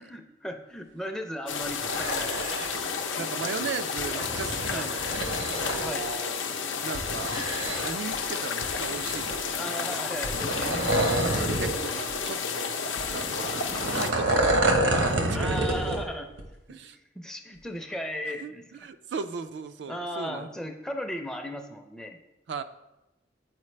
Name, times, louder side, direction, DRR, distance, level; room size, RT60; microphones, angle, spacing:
voice 1, 0.0-2.5 3.6-3.7 4.7-4.9 5.8-6.1 9.5-10.7 14.3-14.5 15.3-16.3 16.7-16.8 17.1-18.6 19.9-22.2, equal, 5° left, 4 dB, 0.5 m, -36 dB
sound 1, 1.5-14.1, left 5 dB, 85° left, 0.6 m, -31 dB
sound 2, 1.7-2.8 4.0-5.8 6.9-8.1 8.6-9.5 10.2-11.8 12.1-12.2 13.0-16.0 16.4-16.5, right 1 dB, 90° right, 1.1 m, -28 dB
voice 2, 3.2-6.4 6.8-7.4 7.8-9.9 11.4-13.6 13.9-15.8 16.7-17.0 18.4-18.5 18.8-20.5 22.5-22.6, right 5 dB, 65° right, 10 dB, 0.3 m, -37 dB
8.3 x 4.6 x 3.2 m, 0.95 s
head